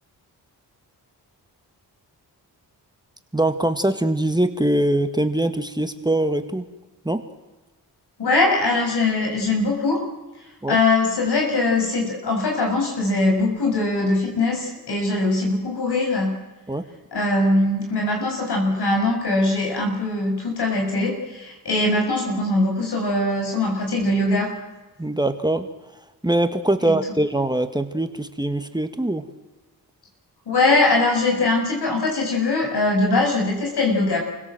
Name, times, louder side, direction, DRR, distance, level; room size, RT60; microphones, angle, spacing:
voice 1, 3.3-6.6 7.0-7.2 10.6-10.8 16.7-16.9 25.0-25.7 26.2-29.2, right 1 dB, 10° right, 8 dB, 1.7 m, -22 dB
voice 2, 8.2-10.1 10.7-16.3 17.1-24.5 26.9-27.0 30.5-34.2, left 2 dB, 75° left, 2 dB, 7.4 m, -21 dB
28.0 x 17.0 x 7.8 m, 1.2 s
cardioid pair, 60°, 40 cm